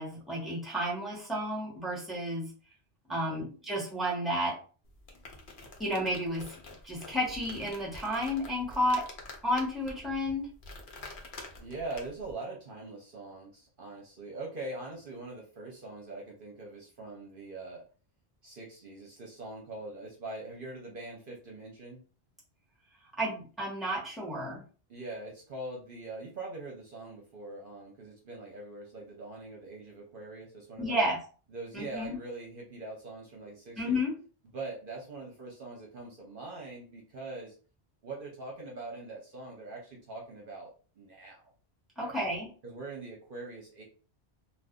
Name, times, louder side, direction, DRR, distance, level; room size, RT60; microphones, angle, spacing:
voice 1, 0.0-2.5 3.1-4.6 5.8-6.5 6.8-9.1 9.4-10.5 23.2-24.6 30.8-31.2 31.7-32.2 33.8-34.1 42.0-42.5, equal, ahead, -4 dB, 1.1 m, -31 dB
voice 2, 3.1-3.6 11.6-17.8 18.4-22.0 24.9-31.0 31.5-34.0 34.5-37.5 38.0-40.7 41.0-41.4 42.0-42.1 42.6-43.8, right 2 dB, 55° right, -1 dB, 0.9 m, -43 dB
sound 1, 4.8-12.3, left 2 dB, 55° left, 0.8 m, -48 dB
2.5 x 2.4 x 3.5 m, 0.38 s
omnidirectional pair, 1.1 m